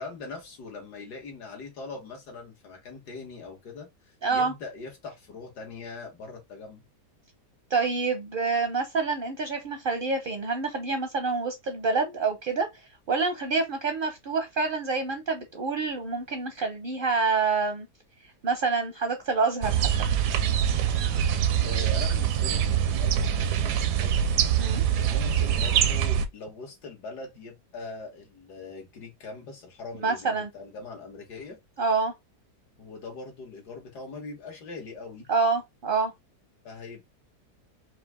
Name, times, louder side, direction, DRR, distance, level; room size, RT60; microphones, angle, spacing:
voice 1, 0.0-6.8 21.6-24.2 25.0-31.6 32.8-35.3 36.6-37.1, left 4 dB, 75° left, 2.0 m, -41 dB
voice 2, 4.2-4.5 7.7-12.7 13.1-17.9 18.4-19.9 24.6-24.8 30.0-30.5 31.8-32.1 35.3-36.1, right 4 dB, 50° right, 0.6 m, -27 dB
sound 1, 19.6-26.3, right 9 dB, 85° right, 1.2 m, -24 dB
4.2 x 2.7 x 3.5 m
omnidirectional pair, 1.8 m